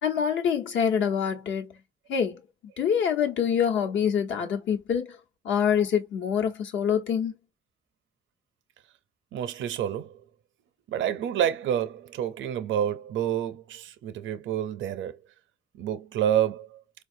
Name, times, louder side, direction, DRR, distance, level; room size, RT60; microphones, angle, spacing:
voice 1, 0.0-1.8 2.1-2.4 2.8-5.2 5.4-7.4, left 8 dB, 75° left, 1.0 m, -25 dB
voice 2, 9.3-10.2 10.9-15.2 15.8-16.8, right 10 dB, 75° right, 0.6 m, -28 dB
4.4 x 2.3 x 2.6 m
cardioid pair, 90°, 20 cm